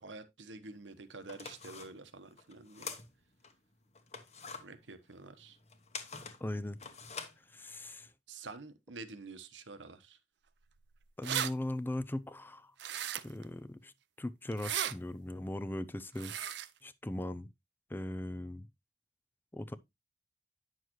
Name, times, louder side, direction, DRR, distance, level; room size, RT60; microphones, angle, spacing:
voice 1, 0.0-2.9 4.6-5.6 8.3-10.2, right 3 dB, 85° right, 1.1 m, -48 dB
sound 1, 0.6-0.7 1.2-3.5 3.9-8.1, left 5 dB, 35° left, 1.1 m, -46 dB
voice 2, 6.4-6.8 7.5-8.1 11.2-12.7 13.2-13.9 14.2-16.3 16.8-17.5 17.9-18.7 19.5-19.8, left 1 dB, 10° left, 0.4 m, -39 dB
sound 2, 10.8-10.9 11.0-11.5 12.8-13.4 14.5-14.9 16.2-16.7, right 10 dB, 65° right, 0.6 m, -35 dB
9.2 x 6.4 x 3.0 m
head